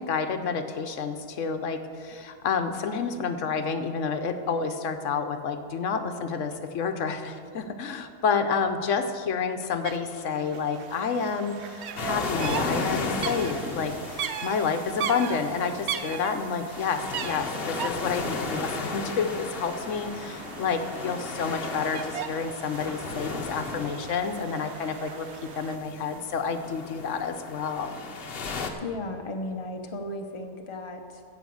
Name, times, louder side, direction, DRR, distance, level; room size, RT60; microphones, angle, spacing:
voice 1, 0.0-28.0, left 5 dB, 80° left, 8 dB, 1.1 m, -29 dB
sound 1, 9.8-10.0 10.2-25.8, right 8 dB, 65° right, 0.9 m, -38 dB
sound 2, 12.0-28.7, left 3 dB, 50° left, 1.1 m, -35 dB
voice 2, 28.8-31.2, left 2 dB, 25° left, 3 dB, 0.9 m, -35 dB
15.5 x 5.9 x 7.8 m, 2.3 s
omnidirectional pair, 1.3 m